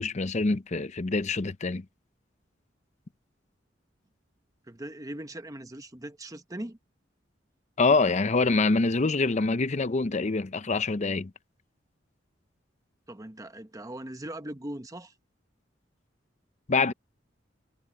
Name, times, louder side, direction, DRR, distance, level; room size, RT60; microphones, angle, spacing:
voice 1, 0.0-1.8 7.8-11.3 16.7-16.9, left 3 dB, 40° left, 0.7 m, -25 dB
voice 2, 4.7-6.8 13.1-15.1, right 1 dB, 20° right, 1.1 m, -40 dB
head